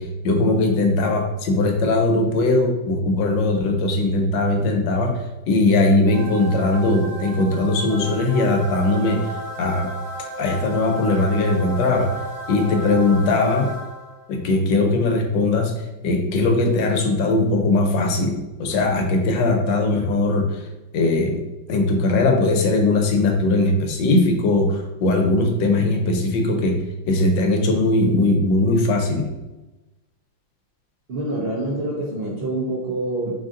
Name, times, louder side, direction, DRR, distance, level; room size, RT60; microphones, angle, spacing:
voice 1, 0.0-5.1 5.5-9.2 9.6-9.9 10.4-12.2 12.5-13.7 14.3-20.7 20.9-21.4 21.7-29.3, left 2 dB, 75° left, 3 dB, 1.3 m, -20 dB
sound 1, 6.1-14.3, right 2 dB, 90° right, 1.6 m, -34 dB
voice 2, 31.1-33.5, right 2 dB, 70° right, -5 dB, 0.5 m, -26 dB
3.9 x 3.7 x 2.5 m, 1.0 s
omnidirectional pair, 2.1 m